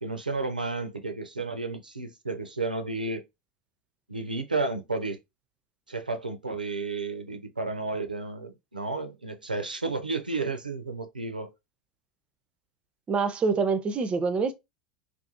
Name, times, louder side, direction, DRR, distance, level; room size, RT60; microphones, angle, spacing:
voice 1, 0.0-3.2 4.1-5.2 5.9-11.5, right 3 dB, 85° right, 0.4 m, -32 dB
voice 2, 13.1-14.5, right 4 dB, 25° right, 0.4 m, -25 dB
2.4 x 2.3 x 2.6 m
figure-of-eight pair, 80°, 4 cm